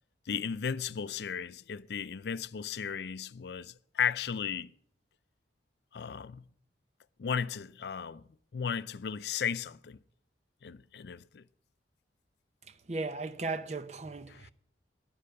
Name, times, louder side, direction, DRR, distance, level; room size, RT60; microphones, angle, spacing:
voice 1, 0.3-4.7 5.9-6.5 7.2-8.2 8.5-10.0 10.6-11.4 14.3-14.5, left 7 dB, 65° left, 0.4 m, -35 dB
voice 2, 12.9-14.5, right 3 dB, 40° right, 0.7 m, -36 dB
11.0 x 10.0 x 5.7 m
head